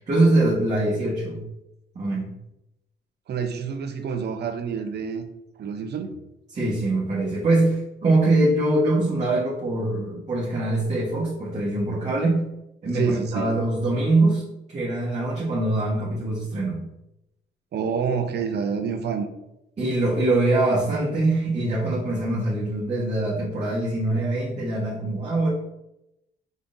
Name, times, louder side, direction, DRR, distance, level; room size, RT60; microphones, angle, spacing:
voice 1, 0.1-1.4 1.9-2.3 6.5-12.4 12.8-14.4 14.7-16.8 19.8-25.5, right 2 dB, 35° right, -7 dB, 1.3 m, -23 dB
voice 2, 3.3-5.3 5.6-6.1 12.9-13.5 17.7-19.3, right 6 dB, 55° right, 7 dB, 0.7 m, -27 dB
5.3 x 3.5 x 2.6 m, 0.86 s
cardioid pair, 90°, 20 cm